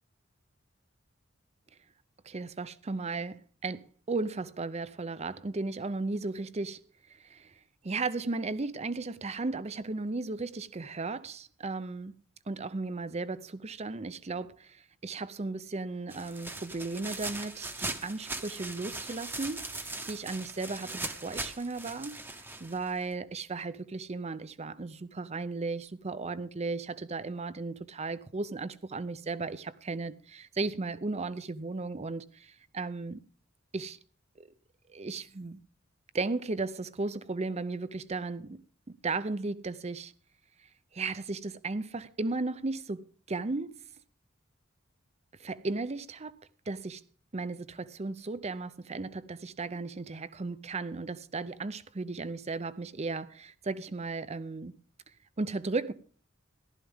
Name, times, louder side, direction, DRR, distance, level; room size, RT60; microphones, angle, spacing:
voice 1, 2.2-6.8 7.1-7.5 7.8-12.1 12.5-33.2 33.7-34.0 34.4-34.5 34.9-35.6 36.1-38.6 38.9-40.1 40.9-43.8 45.4-47.0 47.3-54.7 55.4-55.9, right 3 dB, 30° right, 0.6 m, -35 dB
sound 1, 16.1-23.1, right 2 dB, 10° right, 0.9 m, -40 dB
14.5 x 12.5 x 3.6 m
head